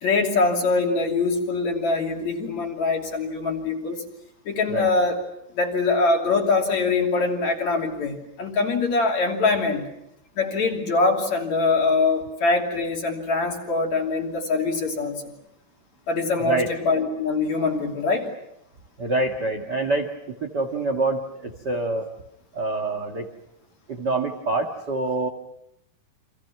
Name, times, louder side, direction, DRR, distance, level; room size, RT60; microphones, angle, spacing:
voice 1, 0.0-4.0 4.5-5.2 5.5-9.9 10.4-15.3 16.1-18.3, left 3 dB, 45° left, 1 dB, 3.9 m, -23 dB
voice 2, 19.0-22.1 22.5-23.3 23.9-25.3, right 2 dB, 45° right, 4 dB, 1.3 m, -26 dB
30.0 x 26.0 x 5.9 m, 0.81 s
omnidirectional pair, 4.6 m